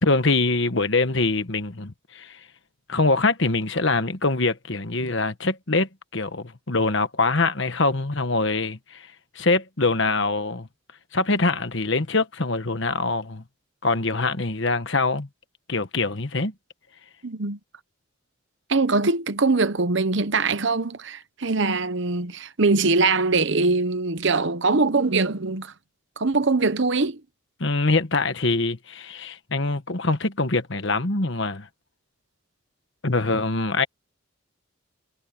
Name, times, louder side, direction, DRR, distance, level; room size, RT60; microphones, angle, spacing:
voice 1, 0.0-2.4 2.9-9.1 9.3-10.7 11.1-13.4 13.8-15.3 15.7-16.5 27.6-31.7 33.0-33.9, left 3 dB, 55° left, 1.4 m, -24 dB
voice 2, 17.2-17.6 18.7-25.7 26.2-27.2, right 3 dB, 55° right, 1.0 m, -22 dB
head